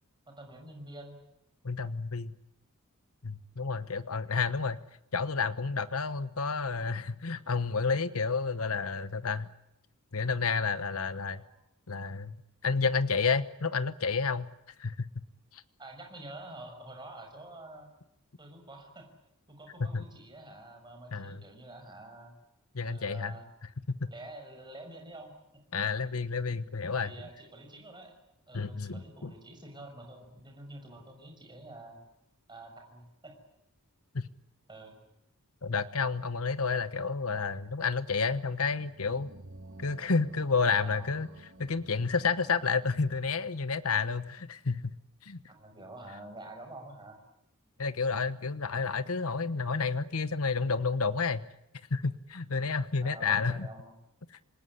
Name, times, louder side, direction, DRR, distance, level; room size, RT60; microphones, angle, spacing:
voice 1, 0.3-1.2 3.7-3.9 11.3-11.5 15.8-17.9 18.4-19.1 19.5-22.3 22.8-23.5 24.1-25.3 27.0-28.1 28.5-32.0 32.5-33.3 34.7-35.0 40.6-41.1 45.5-47.2 53.0-53.9, right 2 dB, 20° right, 3 dB, 6.0 m, -48 dB
voice 2, 1.6-2.3 3.2-4.8 5.1-9.5 10.1-11.4 11.9-12.4 12.6-14.5 14.8-15.1 15.5-15.6 19.8-20.0 21.1-21.4 22.7-23.4 24.0-24.1 25.7-27.1 28.5-29.3 34.1-34.3 35.6-39.3 39.8-41.3 41.6-44.9 45.2-45.4 47.8-51.4 51.9-53.7 54.3-54.4, left 4 dB, 75° left, 13 dB, 1.1 m, -30 dB
sound 1, 38.8-43.3, right 2 dB, 60° right, 1.9 m, -52 dB
27.0 x 20.0 x 9.9 m, 0.82 s
head